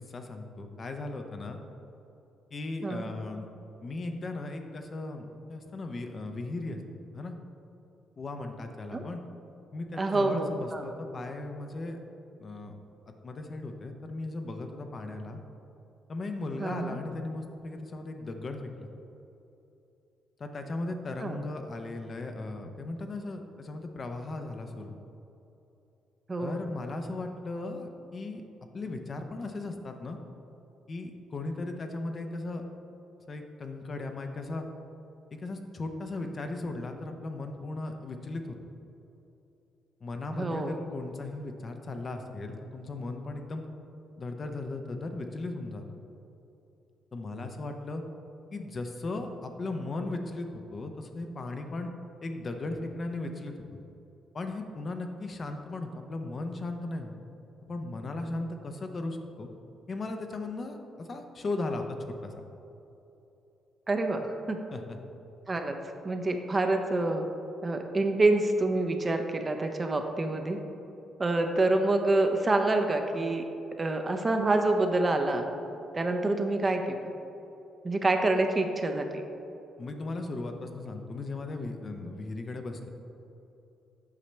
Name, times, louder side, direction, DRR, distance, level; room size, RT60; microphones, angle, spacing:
voice 1, 0.1-1.6 2.5-3.5 3.8-6.8 7.1-7.4 8.2-9.2 9.7-12.0 12.4-12.7 13.2-15.4 16.1-18.9 20.4-24.9 26.4-28.4 28.7-30.2 30.9-32.6 33.3-34.6 35.3-38.6 40.0-43.6 44.2-45.8 47.1-48.0 48.5-51.9 52.2-53.5 54.3-57.1 57.7-59.5 59.9-61.9 62.2-62.4 64.7-65.0 79.8-82.9, left 2 dB, 40° left, 5 dB, 0.6 m, -37 dB
voice 2, 10.0-10.9 16.6-17.0 21.2-21.4 26.3-26.6 40.3-40.7 63.9-64.6 65.5-65.8 66.0-67.2 67.6-70.6 71.2-73.4 73.8-75.5 75.9-77.0 77.8-79.2, right 2 dB, 30° right, 5 dB, 0.6 m, -27 dB
8.3 x 5.7 x 3.2 m, 2.9 s
cardioid pair, 90°, 0 cm